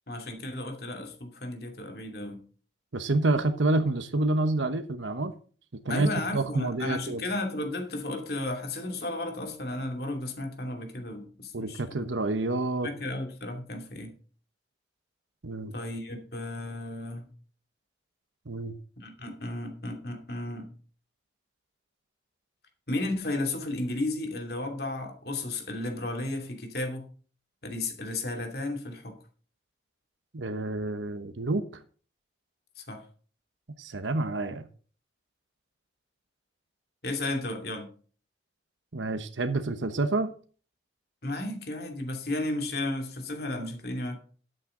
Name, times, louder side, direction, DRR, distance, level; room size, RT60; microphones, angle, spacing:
voice 1, 0.1-2.4 5.9-12.0 12.8-14.1 15.7-17.3 19.0-20.7 22.9-27.1 27.6-29.2 32.8-33.0 37.0-37.9 41.2-44.2, left 2 dB, 55° left, 2.7 m, -33 dB
voice 2, 2.9-5.3 5.8-6.1 6.3-7.2 11.5-12.9 15.4-15.7 18.5-18.7 30.3-31.6 33.8-34.6 38.9-40.3, right 2 dB, 85° right, 1.1 m, -28 dB
12.5 x 9.0 x 3.8 m
head